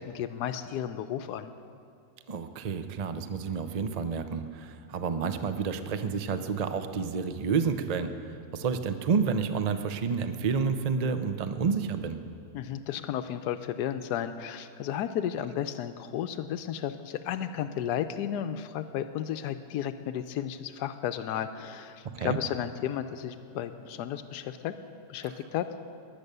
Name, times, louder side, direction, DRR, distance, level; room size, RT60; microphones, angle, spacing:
voice 1, 0.0-1.5 12.5-24.7 25.1-25.6, left 10 dB, 90° left, 9 dB, 1.2 m, -33 dB
voice 2, 2.3-12.2 22.1-22.4, right 5 dB, 45° right, 9 dB, 0.5 m, -30 dB
22.0 x 8.6 x 6.7 m, 2.4 s
omnidirectional pair, 1.7 m